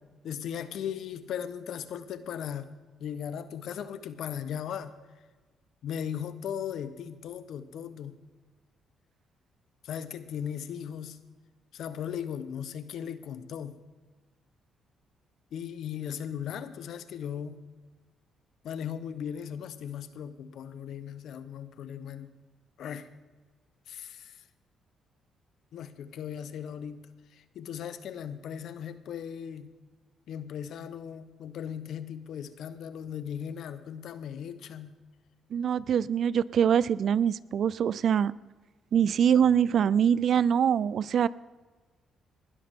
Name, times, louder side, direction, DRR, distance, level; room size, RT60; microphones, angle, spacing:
voice 1, 0.2-2.7 3.0-4.9 5.8-8.2 9.8-11.2 11.7-13.8 15.5-17.6 18.6-22.3 22.8-23.1 23.9-24.4 25.7-27.0 27.3-29.7 30.3-34.9, left 8 dB, 75° left, 12 dB, 1.0 m, -37 dB
voice 2, 35.5-38.3 38.9-41.3, right 8 dB, 60° right, 20 dB, 0.4 m, -24 dB
20.0 x 12.5 x 3.7 m, 1.3 s
cardioid pair, 90°, 0 cm